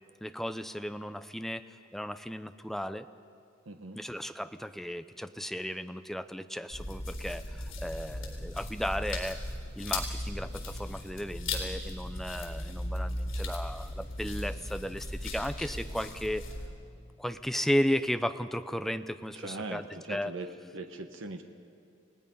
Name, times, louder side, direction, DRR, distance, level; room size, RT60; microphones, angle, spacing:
voice 1, 0.2-3.1 3.9-9.4 9.8-16.5 17.2-20.4, equal, ahead, 10 dB, 0.6 m, -35 dB
voice 2, 3.6-4.0 19.3-20.5 20.7-21.4, right 3 dB, 80° right, 5 dB, 1.3 m, -40 dB
sound 1, 6.7-16.7, left 1 dB, 85° left, 4.1 m, -37 dB
29.5 x 18.5 x 5.5 m, 2.5 s
head